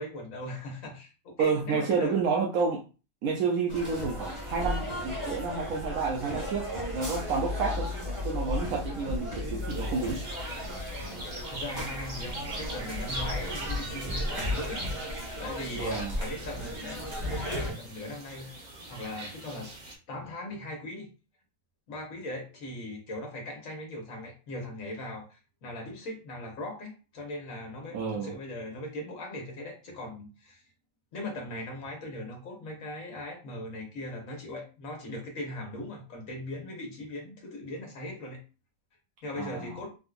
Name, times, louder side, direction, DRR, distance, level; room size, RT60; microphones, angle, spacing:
voice 1, 0.0-2.2 11.5-14.8 15.4-18.5 18.9-19.7 20.1-21.1 21.9-30.6 31.1-38.4 39.2-40.0, left 1 dB, 65° left, 0 dB, 1.6 m, -39 dB
voice 2, 1.4-2.8 3.2-7.9 8.2-10.2 15.8-16.1 27.9-28.3 39.4-39.8, right 5 dB, 75° right, -1 dB, 1.1 m, -30 dB
sound 1, 3.7-17.7, left 1 dB, 20° right, 1.1 m, -35 dB
sound 2, 9.7-20.0, right 2 dB, 40° right, 0.8 m, -42 dB
3.6 x 2.7 x 2.4 m, 0.32 s
omnidirectional pair, 1.5 m